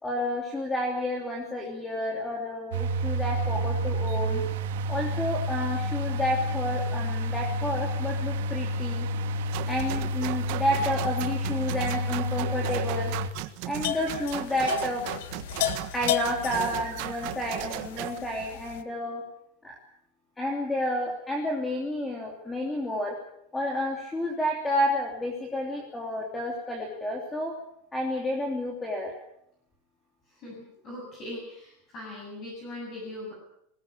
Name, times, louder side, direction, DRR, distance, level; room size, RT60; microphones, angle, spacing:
voice 1, 0.0-4.4 4.9-9.1 9.7-13.1 13.7-15.0 15.9-19.2 19.6-19.8 20.4-23.1 23.5-27.5 27.9-29.1, left 1 dB, 5° left, 0 dB, 2.9 m, -30 dB
sound 1, 2.7-13.3, equal, 75° right, 2.0 m, -29 dB
sound 2, 9.5-18.2, right 17 dB, 45° right, 1.3 m, -36 dB
sound 3, 13.7-18.8, left 11 dB, 65° left, 1.7 m, -34 dB
voice 2, 30.3-33.3, left 1 dB, 25° left, -3 dB, 7.8 m, -40 dB
21.5 x 18.5 x 8.8 m, 0.75 s
supercardioid pair, 180°, 0 cm